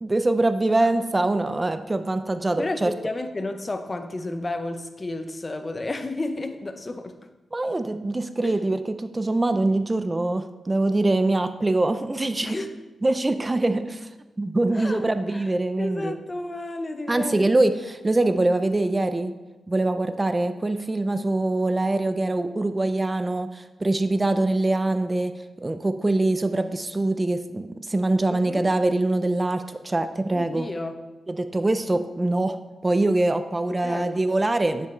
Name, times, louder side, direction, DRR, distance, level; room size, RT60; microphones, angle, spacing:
voice 1, 0.0-2.9 7.5-12.6 13.0-14.1 14.4-16.1 17.1-19.3 19.7-25.3 25.6-30.7 31.3-32.6 32.8-34.9, right 2 dB, 25° right, 0.4 m, -23 dB
voice 2, 2.6-7.2 8.4-8.6 12.4-12.8 14.7-15.0 15.3-15.5 15.8-17.5 28.3-28.7 30.3-31.0 33.7-34.2, left 2 dB, 30° left, 0.6 m, -32 dB
8.9 x 5.4 x 3.1 m
cardioid pair, 75°, 0 cm